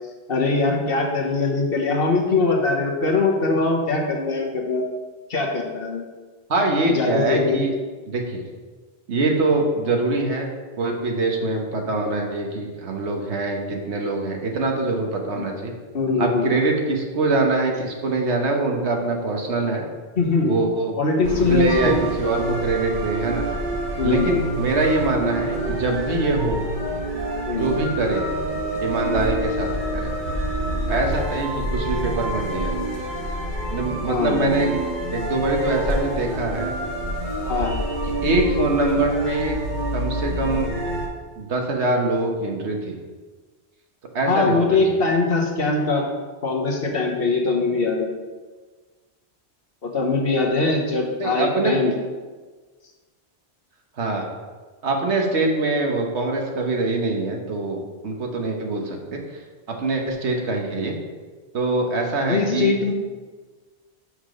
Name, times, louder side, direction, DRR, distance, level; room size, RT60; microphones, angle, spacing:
voice 1, 0.3-4.8 5.3-6.0 6.9-7.6 15.3-15.5 15.9-16.5 20.2-20.5 21.0-22.0 24.0-24.3 27.5-27.7 34.0-34.4 37.4-37.7 44.3-46.0 46.4-48.1 49.8-51.9 62.3-62.9, left 3 dB, 60° left, 0 dB, 1.3 m, -22 dB
voice 2, 6.5-7.7 8.1-8.4 9.1-10.5 10.8-15.7 16.2-19.8 20.4-21.0 21.4-23.5 24.0-26.6 27.5-28.3 28.8-30.1 30.9-32.7 33.7-34.7 35.1-36.7 38.2-39.6 39.9-40.7 41.4-43.0 44.1-44.8 51.2-51.8 54.0-54.3 54.8-59.4 59.7-61.0 61.5-62.8, right 2 dB, 80° right, 2 dB, 1.4 m, -23 dB
sound 1, 21.2-41.1, right 1 dB, 45° right, 1.5 m, -27 dB
6.2 x 5.8 x 5.1 m, 1.4 s
omnidirectional pair, 1.1 m